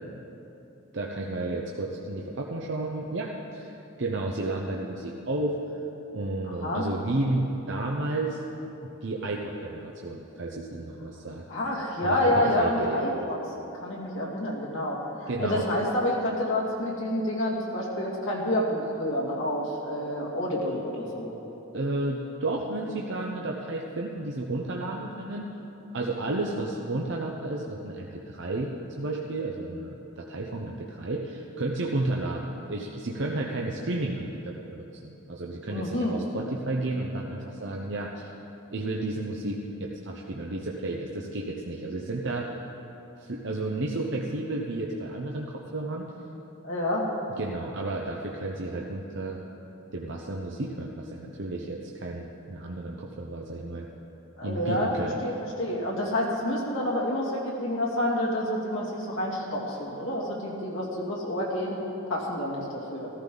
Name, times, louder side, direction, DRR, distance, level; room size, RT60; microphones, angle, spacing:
voice 1, 0.9-5.6 6.1-8.4 9.0-11.4 12.0-13.1 15.3-15.7 21.7-25.4 25.9-28.7 29.0-38.3 38.7-42.5 43.2-46.1 47.4-49.4 49.9-53.9 54.4-55.2, right 2 dB, 60° right, -1 dB, 0.8 m, -32 dB
voice 2, 6.5-6.8 11.5-13.4 13.8-21.3 35.7-36.2 46.6-47.1 54.4-54.9 55.2-61.8 62.1-63.1, left 1 dB, 70° left, -3 dB, 2.5 m, -28 dB
14.0 x 14.0 x 3.9 m, 3.0 s
head